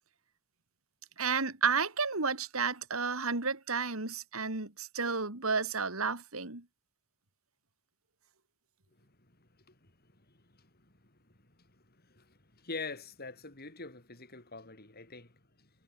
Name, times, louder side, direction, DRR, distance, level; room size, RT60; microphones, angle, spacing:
voice 1, 1.2-6.6, right 5 dB, 80° right, 3.0 m, -32 dB
voice 2, 9.4-15.7, left 3 dB, 45° left, 6.9 m, -46 dB
head